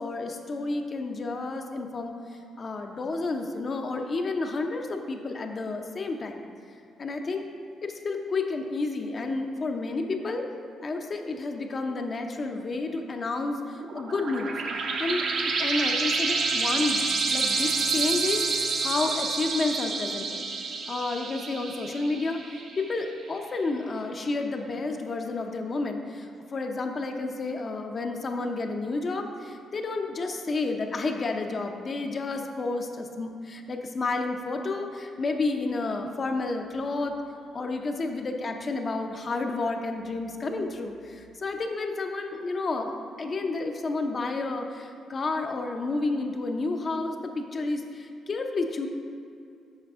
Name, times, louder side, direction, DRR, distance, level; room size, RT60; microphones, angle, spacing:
voice 1, 0.0-2.2 2.6-6.4 7.0-7.4 7.8-10.4 10.8-14.5 15.0-20.4 20.9-22.4 22.8-37.2 37.5-48.9, left 3 dB, 40° left, 4 dB, 0.6 m, -30 dB
sound 1, 13.8-23.0, right 4 dB, 60° right, 0.7 m, -28 dB
7.3 x 4.8 x 3.6 m, 2.4 s
cardioid pair, 90°, 0 cm